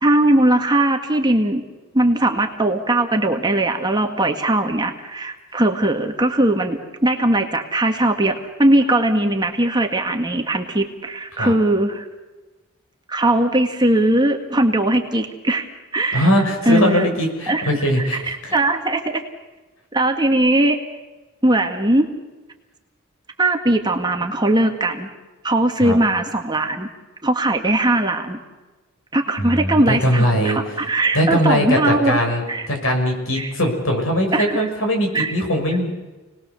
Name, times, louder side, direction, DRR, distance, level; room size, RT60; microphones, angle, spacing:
voice 1, 0.0-1.6 1.9-12.1 13.1-15.7 15.9-16.3 16.6-17.1 17.5-17.7 18.0-19.2 19.9-20.8 21.4-22.1 23.4-25.1 25.4-26.9 27.2-28.4 29.1-32.2 32.5-32.7 33.4-33.5 34.3-34.7 35.1-35.3, right 1 dB, 20° right, 4 dB, 1.8 m, -19 dB
voice 2, 16.1-18.6 25.8-26.0 29.4-30.8 31.1-35.9, equal, 70° left, 3 dB, 6.1 m, -20 dB
29.5 x 20.0 x 6.9 m, 1.2 s
head